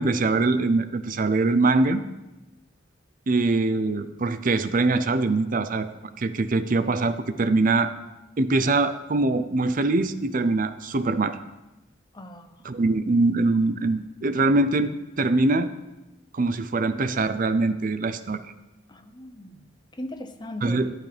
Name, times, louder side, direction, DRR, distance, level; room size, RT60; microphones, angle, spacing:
voice 1, 0.0-2.0 3.3-5.9 6.2-7.9 8.4-11.4 12.6-15.7 16.3-18.4 20.6-20.9, right 3 dB, 45° right, 12 dB, 0.5 m, -23 dB
voice 2, 12.1-12.6 18.9-20.8, left 1 dB, 20° left, 8 dB, 0.7 m, -39 dB
12.0 x 11.0 x 3.4 m, 1.0 s
head